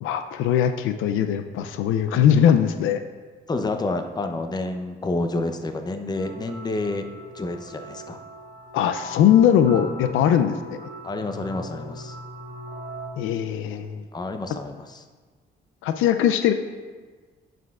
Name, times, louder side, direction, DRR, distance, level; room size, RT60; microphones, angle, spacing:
voice 1, 0.0-3.0 8.7-10.8 13.2-14.0 15.8-16.5, left 9 dB, 85° left, 9 dB, 0.4 m, -20 dB
voice 2, 3.5-7.1 7.3-8.2 9.7-10.2 11.0-12.1 14.1-15.0, left 2 dB, 20° left, 7 dB, 0.6 m, -29 dB
sound 1, 6.1-13.1, equal, 30° right, 1.5 m, -40 dB
10.5 x 5.0 x 2.3 m, 1.4 s
cardioid pair, 90°, 20 cm